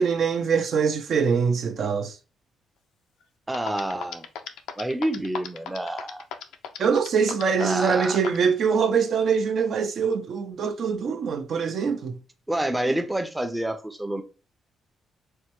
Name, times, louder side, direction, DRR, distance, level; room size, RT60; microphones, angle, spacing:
voice 1, 0.0-2.2 6.8-12.2, right 6 dB, 60° right, 0.6 m, -23 dB
sound 1, 3.2-3.3 3.5-8.5, left 8 dB, 90° left, 0.4 m, -35 dB
voice 2, 3.5-4.3 4.8-6.3 7.6-8.2 12.5-14.2, right 1 dB, 10° right, 0.5 m, -28 dB
4.3 x 2.2 x 3.0 m
cardioid pair, 90°, 0 cm